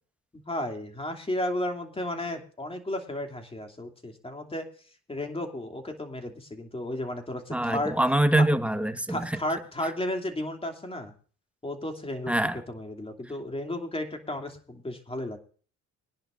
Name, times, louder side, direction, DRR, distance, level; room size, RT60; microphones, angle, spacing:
voice 1, 0.4-4.7 5.1-8.0 8.4-8.5 9.1-11.1 11.6-12.3 12.7-15.4, left 1 dB, 20° left, 5 dB, 2.9 m, -33 dB
voice 2, 7.5-9.4 12.3-12.6, right 1 dB, 5° right, 9 dB, 1.4 m, -24 dB
23.0 x 10.5 x 2.6 m, 0.40 s
cardioid pair, 90°, 30 cm